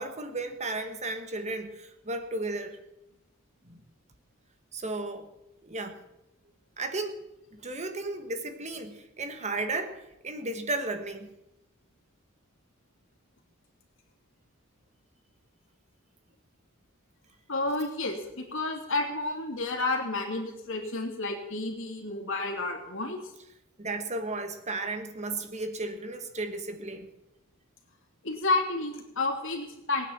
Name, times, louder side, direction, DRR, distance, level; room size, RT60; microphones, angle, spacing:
voice 1, 0.0-2.8 3.6-3.8 4.7-5.3 5.6-6.0 6.8-7.2 7.5-11.3 23.8-27.1, right 2 dB, 35° right, 7 dB, 1.4 m, -34 dB
voice 2, 17.5-23.3 28.2-30.1, left 2 dB, 65° left, 2 dB, 3.0 m, -31 dB
19.5 x 9.6 x 7.4 m, 0.90 s
head